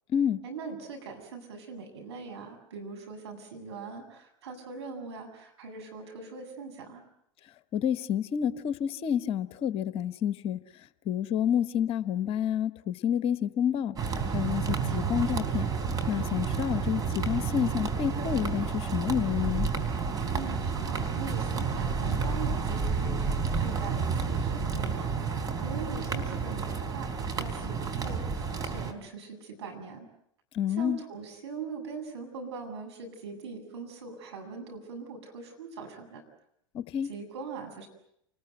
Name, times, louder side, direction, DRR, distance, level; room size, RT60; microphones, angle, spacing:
voice 1, 0.4-7.0 20.3-27.1 27.4-30.1 30.8-36.2 37.1-37.9, right 4 dB, 75° right, 8.0 m, -41 dB
voice 2, 7.7-10.6 11.1-13.9 14.3-15.7 16.1-19.7 30.5-31.0 36.7-37.1, left 9 dB, 40° left, 1.3 m, -29 dB
sound 1, 14.0-28.9, right 5 dB, 25° right, 3.9 m, -30 dB
29.0 x 20.5 x 9.3 m
hypercardioid pair, 90°, 14 cm